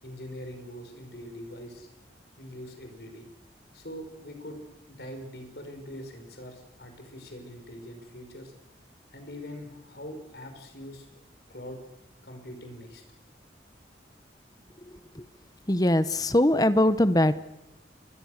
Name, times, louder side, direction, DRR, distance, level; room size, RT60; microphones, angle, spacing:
voice 1, 0.0-1.9 2.4-3.3 3.7-4.6 4.9-8.5 9.1-11.2 11.5-11.8 12.2-13.0, equal, 65° left, 5 dB, 5.5 m, -43 dB
voice 2, 15.7-17.4, left 1 dB, 20° left, 13 dB, 0.8 m, -21 dB
30.0 x 22.0 x 6.6 m, 1.0 s
head